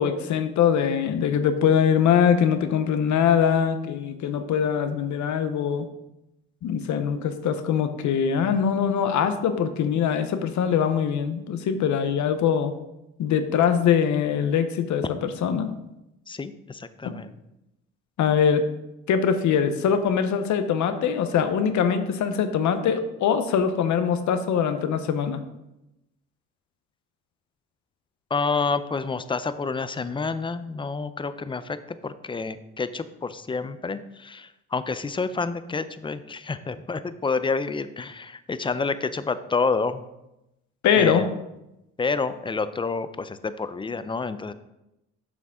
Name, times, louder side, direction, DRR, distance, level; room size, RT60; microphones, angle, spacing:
voice 1, 0.0-5.8 6.6-12.7 13.2-15.8 17.0-17.1 18.2-18.6 19.1-25.4 40.8-41.3, left 7 dB, 70° left, 9 dB, 0.7 m, -22 dB
voice 2, 16.3-17.3 28.3-40.0 41.0-41.3 42.0-44.5, left 4 dB, 15° left, 13 dB, 0.4 m, -29 dB
7.1 x 6.0 x 3.6 m, 0.90 s
cardioid pair, 90°, 30 cm